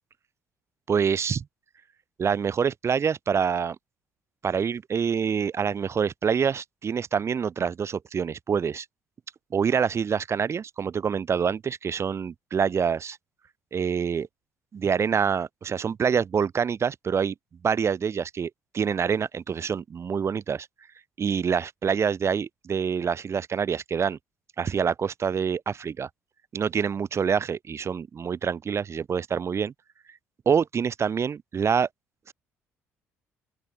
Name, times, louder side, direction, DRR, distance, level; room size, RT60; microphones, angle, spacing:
voice 1, 0.9-1.4 2.2-3.8 4.4-8.8 9.5-13.2 13.7-14.3 14.7-17.3 17.6-20.7 21.2-24.2 24.6-26.1 26.5-29.7 30.4-31.9 32.3-32.4, right 6 dB, 40° right, 1.4 m, -26 dB
open air
hypercardioid pair, 55°, 7 cm